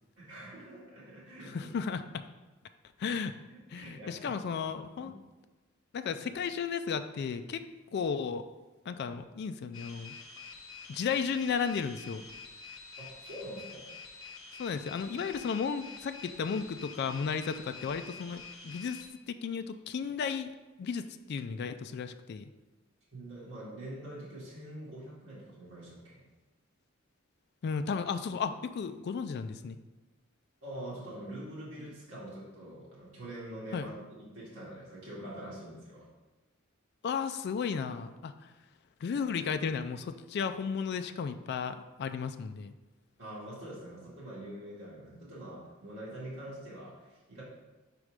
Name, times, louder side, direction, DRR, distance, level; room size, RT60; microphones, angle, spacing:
voice 1, 0.2-1.7 3.5-4.4 5.0-5.2 6.2-6.3 13.0-13.9 23.1-26.2 30.6-36.1 43.2-47.4, right 1 dB, 80° right, -8 dB, 1.9 m, -45 dB
voice 2, 1.5-2.2 3.0-3.3 3.7-5.1 5.9-7.6 7.9-8.4 8.9-10.1 10.9-12.2 14.6-20.5 20.8-22.4 27.6-29.8 33.7-33.9 37.0-38.5 39.0-42.7, left 6 dB, 55° left, 9 dB, 0.3 m, -34 dB
sound 1, 9.7-19.1, left 4 dB, 80° left, 0.7 m, -48 dB
4.8 x 4.2 x 5.0 m, 1.2 s
head